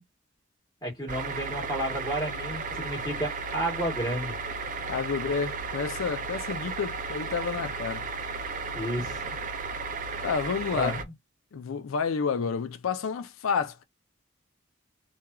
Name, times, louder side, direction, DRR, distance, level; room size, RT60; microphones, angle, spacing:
voice 1, 0.8-4.4 8.7-9.2 10.7-11.1, equal, 20° left, 1.5 m, -32 dB
sound 1, 1.1-11.0, right 4 dB, 40° right, 0.3 m, -34 dB
voice 2, 4.9-8.0 10.2-11.0 11.5-13.8, left 6 dB, 90° left, 0.4 m, -30 dB
3.0 x 2.4 x 2.3 m
head